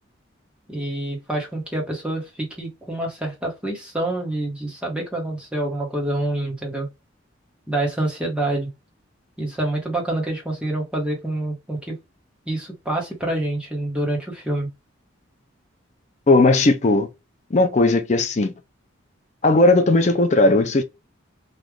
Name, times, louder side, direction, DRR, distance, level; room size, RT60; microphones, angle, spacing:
voice 1, 0.7-6.9 7.7-8.7 9.4-12.0 12.5-14.7, right 1 dB, 5° right, 1.1 m, -27 dB
voice 2, 16.3-17.1 17.5-18.5 19.4-20.8, left 2 dB, 35° left, 0.5 m, -17 dB
3.1 x 2.4 x 3.5 m
head